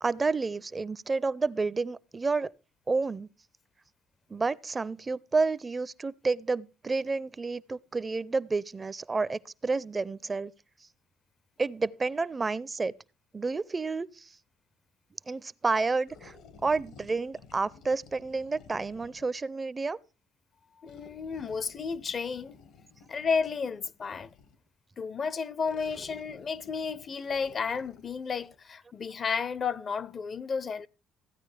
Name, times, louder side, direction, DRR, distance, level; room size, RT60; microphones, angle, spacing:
voice 1, 0.0-2.5 2.9-3.3 4.3-10.5 11.6-12.9 13.3-14.4 15.3-16.3 16.6-20.0, right 3 dB, 30° right, 0.4 m, -30 dB
sound 1, 16.1-19.4 20.9-24.7 25.6-28.6, left 4 dB, 75° left, 1.3 m, -54 dB
voice 2, 20.8-22.6 23.1-24.3 25.0-30.9, left 5 dB, 45° left, 0.5 m, -32 dB
15.0 x 9.2 x 3.3 m
supercardioid pair, 65°, 0 cm